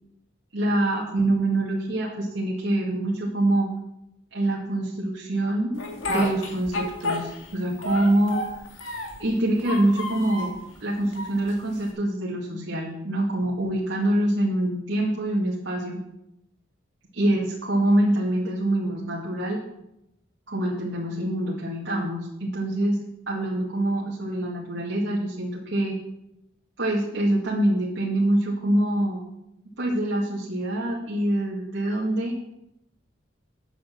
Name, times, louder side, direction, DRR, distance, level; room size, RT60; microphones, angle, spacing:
voice 1, 0.5-3.7 4.3-8.5 9.2-10.5 10.8-16.0 17.1-19.6 20.5-25.9 26.8-29.2 29.8-32.3, right 1 dB, 70° right, -4 dB, 2.3 m, -25 dB
Speech, 5.8-7.5 7.8-9.2 9.6-10.6 11.1-11.9, left 1 dB, 80° left, 2.7 m, -31 dB
9.1 x 8.5 x 7.3 m, 0.84 s
head